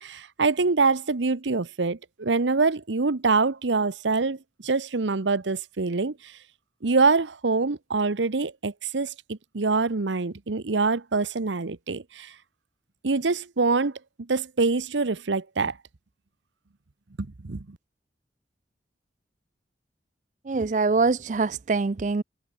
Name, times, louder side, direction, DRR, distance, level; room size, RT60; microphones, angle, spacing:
voice 1, 0.0-6.3 6.8-12.3 13.0-15.8 17.2-17.8, right 4 dB, 90° right, 0.9 m, -25 dB
voice 2, 20.5-22.2, right 4 dB, 45° right, 0.4 m, -24 dB
head